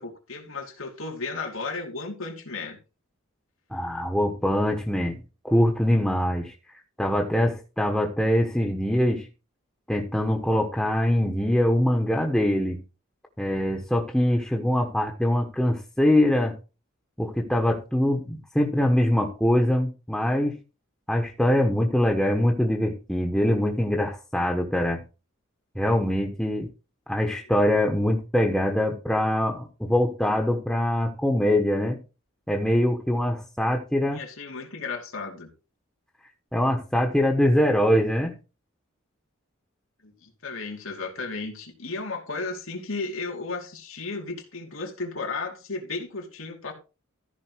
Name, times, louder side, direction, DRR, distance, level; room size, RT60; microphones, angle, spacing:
voice 1, 0.0-2.8 34.1-35.5 40.0-46.7, left 3 dB, 80° left, 2.6 m, -34 dB
voice 2, 3.7-9.3 9.9-12.8 13.4-16.6 17.2-20.6 21.1-25.0 25.7-26.7 27.1-32.0 32.5-34.2 36.5-38.3, left 1 dB, 5° left, 1.2 m, -23 dB
14.0 x 5.4 x 4.7 m
head